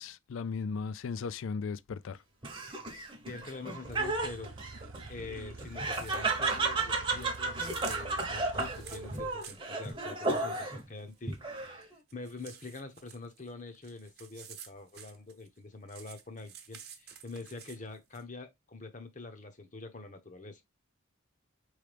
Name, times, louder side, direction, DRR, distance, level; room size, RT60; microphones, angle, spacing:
voice 1, 0.0-2.2, left 5 dB, 70° left, 0.4 m, -36 dB
Laughter, 2.4-10.8 11.3-11.9, right 3 dB, 25° right, 0.8 m, -33 dB
voice 2, 3.2-7.6 7.8-11.4 11.6-20.6, left 3 dB, 35° left, 0.8 m, -45 dB
sound 1, 3.8-9.2, right 3 dB, 80° right, 0.7 m, -48 dB
sound 2, 5.9-6.6 6.9-11.8 12.1-15.6 15.9-18.2, right 8 dB, 50° right, 1.0 m, -51 dB
4.7 x 3.2 x 3.3 m
head